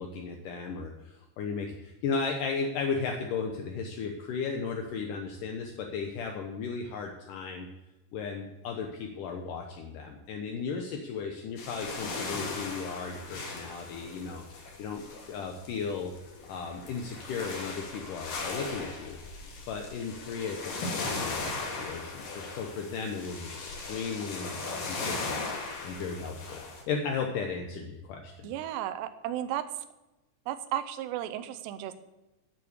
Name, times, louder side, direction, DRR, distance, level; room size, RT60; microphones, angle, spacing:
voice 1, 0.0-7.7 8.1-15.0 15.3-16.1 16.5-25.4 25.8-26.6 26.9-28.5, left 5 dB, 75° left, 3 dB, 1.9 m, -35 dB
sound 1, 11.6-26.8, left 3 dB, 55° left, 3.4 m, -38 dB
voice 2, 28.4-29.6 30.5-31.9, right 12 dB, 80° right, 10 dB, 2.8 m, -34 dB
10.0 x 8.6 x 8.1 m, 1.0 s
omnidirectional pair, 5.1 m